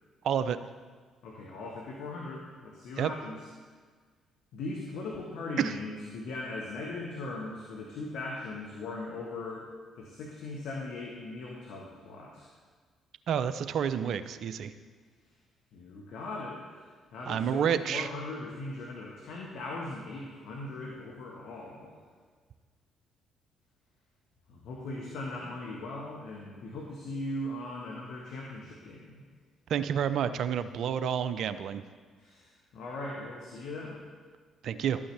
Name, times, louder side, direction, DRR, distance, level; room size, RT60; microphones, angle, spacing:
voice 1, 0.2-0.6 3.0-3.1 5.6-5.7 13.3-14.7 17.3-18.1 29.7-31.8 34.6-35.0, right 8 dB, 60° right, 13 dB, 0.4 m, -29 dB
voice 2, 1.2-3.4 4.5-9.7 10.0-12.5 15.7-16.8 17.1-22.0 24.5-29.3 32.2-34.0, left 2 dB, 65° left, -2 dB, 1.3 m, -39 dB
12.0 x 8.7 x 3.3 m, 1.5 s
hypercardioid pair, 50°, 0 cm